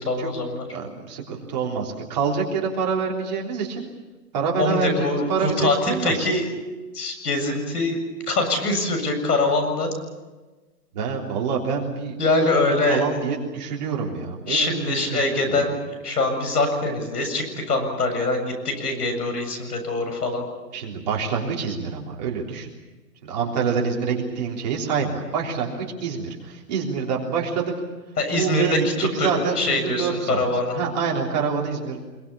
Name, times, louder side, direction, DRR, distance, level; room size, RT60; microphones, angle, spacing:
voice 1, 0.0-0.6 4.6-6.5 6.9-8.0 8.3-9.9 12.2-13.0 14.5-15.7 16.0-20.4 28.2-29.3 29.6-30.7, left 2 dB, 70° left, 7 dB, 7.5 m, -23 dB
voice 2, 0.7-3.9 4.3-6.3 10.9-15.7 20.7-22.7 23.2-27.7 28.3-28.8 29.1-30.4 30.7-32.0, right 5 dB, 25° right, -2 dB, 3.5 m, -26 dB
25.5 x 23.0 x 7.2 m, 1.2 s
hypercardioid pair, 170°, 49 cm